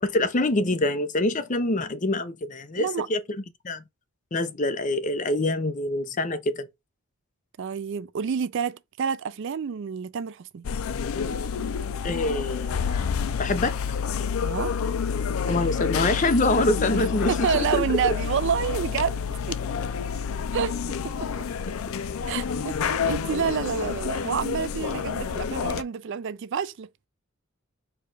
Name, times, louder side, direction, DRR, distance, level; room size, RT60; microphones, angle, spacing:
voice 1, 0.0-3.2 3.6-3.8 4.3-6.7 12.0-13.8 15.5-18.1, left 2 dB, 35° left, 0.7 m, -25 dB
voice 2, 2.8-3.1 7.6-10.7 14.4-14.7 16.9-19.2 19.5-19.6 20.5-20.8 21.0-21.3 22.3-26.9, right 7 dB, 55° right, 0.4 m, -29 dB
sound 1, 10.6-25.8, left 6 dB, 75° left, 0.4 m, -29 dB
4.7 x 2.4 x 4.8 m
head